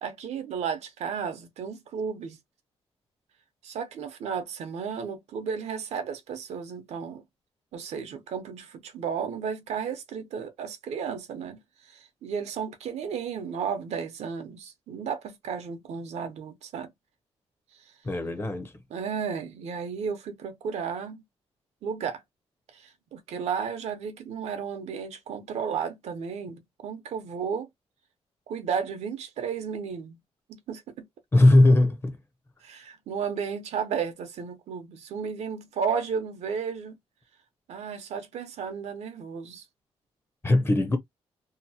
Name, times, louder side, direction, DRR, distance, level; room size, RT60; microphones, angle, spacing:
voice 1, 0.0-2.4 3.6-7.2 7.7-16.9 18.9-21.2 21.8-22.2 22.7-27.7 28.5-30.2 30.5-30.8 32.6-37.0 37.7-39.6, right 6 dB, 85° right, 0.7 m, -33 dB
voice 2, 18.0-18.7 31.3-32.1 40.4-41.0, left 1 dB, 20° left, 0.6 m, -19 dB
2.8 x 2.1 x 2.7 m
cardioid pair, 130°, 11 cm